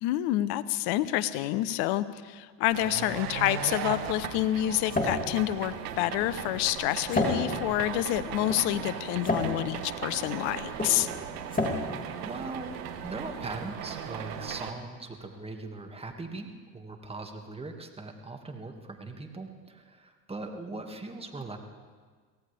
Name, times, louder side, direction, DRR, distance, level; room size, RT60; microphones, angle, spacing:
voice 1, 0.0-11.1, left 14 dB, 60° left, 15 dB, 0.9 m, -28 dB
sound 1, 2.6-14.7, right 9 dB, 80° right, 1.4 m, -38 dB
sound 2, 3.2-13.1, left 2 dB, 20° left, 3.0 m, -33 dB
voice 2, 12.2-12.8 13.0-21.6, right 3 dB, 15° right, 3 dB, 2.0 m, -40 dB
23.5 x 17.0 x 3.5 m, 1.5 s
hypercardioid pair, 80°, 45 cm